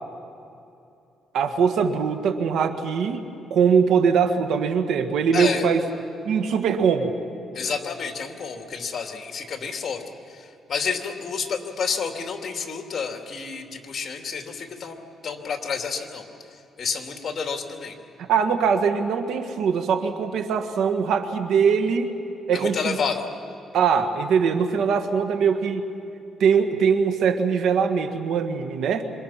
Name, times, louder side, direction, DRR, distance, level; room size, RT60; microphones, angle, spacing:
voice 1, 1.3-5.8 6.2-7.2 18.3-22.2 22.5-23.0 23.7-25.9 26.4-29.1, right 6 dB, 75° right, 7 dB, 1.7 m, -22 dB
voice 2, 5.3-5.6 7.5-10.0 10.3-17.9 22.5-23.3, left 5 dB, 45° left, 3 dB, 2.8 m, -30 dB
26.5 x 25.0 x 5.9 m, 2.7 s
cardioid pair, 90°, 0 cm